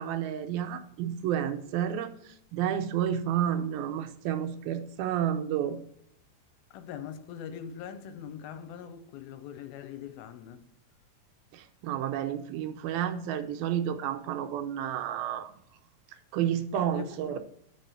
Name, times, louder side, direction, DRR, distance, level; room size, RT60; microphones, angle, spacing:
voice 1, 0.0-5.8 11.5-15.5 16.3-17.4, right 10 dB, 80° right, 2.6 m, -31 dB
voice 2, 6.7-10.7 16.7-17.4, left 8 dB, 85° left, 2.6 m, -42 dB
8.3 x 5.7 x 6.8 m
omnidirectional pair, 4.3 m